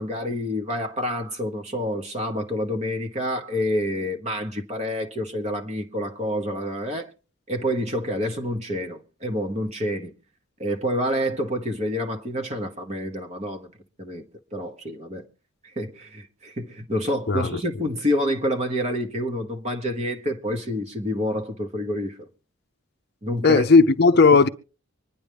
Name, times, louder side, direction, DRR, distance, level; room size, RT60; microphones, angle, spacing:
voice 1, 0.0-7.1 7.5-10.1 10.6-13.7 14.0-14.2 14.5-15.3 15.6-22.3 23.2-23.6, equal, 30° right, 1.1 m, -28 dB
voice 2, 23.4-24.5, left 4 dB, 50° left, 0.6 m, -15 dB
25.0 x 10.5 x 3.4 m
head